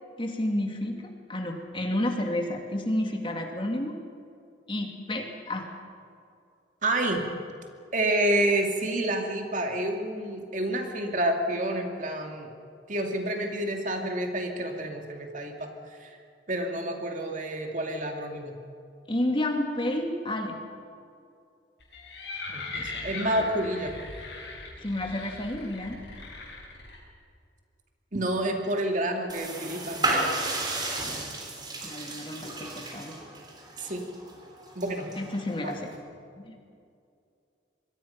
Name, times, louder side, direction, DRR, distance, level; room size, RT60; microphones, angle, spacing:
voice 1, 0.2-3.9 4.7-5.7 19.1-20.6 23.4-23.5 24.8-26.0 31.8-33.2 35.2-35.9 36.4-36.5, left 1 dB, 30° left, 2 dB, 2.5 m, -30 dB
voice 2, 6.8-7.2 7.9-12.5 12.9-15.7 16.0-16.1 16.5-18.6 22.5-23.9 28.1-30.6 33.8-34.0 34.8-35.1 35.6-35.8, right 1 dB, 45° right, 3 dB, 2.5 m, -29 dB
sound 1, 21.8-27.0, left 3 dB, 70° left, 7.1 m, -39 dB
sound 2, 29.3-36.0, right 2 dB, 25° right, 3.8 m, -33 dB
26.5 x 22.5 x 5.9 m, 2.4 s
head